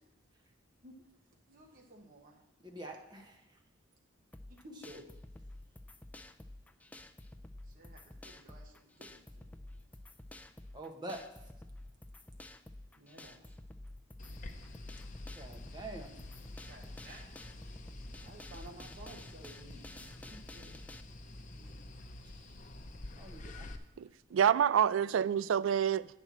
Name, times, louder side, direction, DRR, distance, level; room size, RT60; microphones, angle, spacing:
voice 1, 1.5-2.4 4.5-5.2 7.7-9.6 13.0-13.5 16.7-17.2 18.2-20.7 21.6-21.9 25.0-25.2, right 1 dB, 45° right, 1.1 m, -55 dB
voice 2, 2.6-3.4 4.8-5.0 10.7-11.2 15.4-16.1 22.2-22.6 23.2-23.7, right 2 dB, 25° right, 1.2 m, -46 dB
sound 1, 4.3-21.0, left 1 dB, 10° left, 0.3 m, -51 dB
sound 2, 14.2-23.8, left 2 dB, 40° left, 0.7 m, -48 dB
voice 3, 24.0-26.1, right 8 dB, 80° right, 0.3 m, -28 dB
8.9 x 4.3 x 7.3 m
head